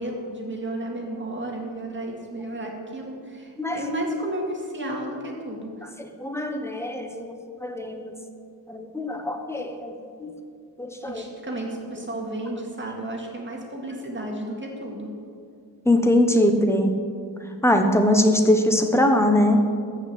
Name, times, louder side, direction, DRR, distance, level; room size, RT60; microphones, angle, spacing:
voice 1, 0.0-5.7 11.1-15.1, right 1 dB, 25° right, 0 dB, 2.1 m, -32 dB
voice 2, 6.2-7.3 7.6-8.1 8.7-9.9 10.2-10.3 10.8-11.2 15.9-17.0 17.6-19.6, left 1 dB, 5° left, 5 dB, 1.0 m, -21 dB
14.0 x 5.5 x 8.1 m, 2.2 s
wide cardioid pair, 140°, 42 cm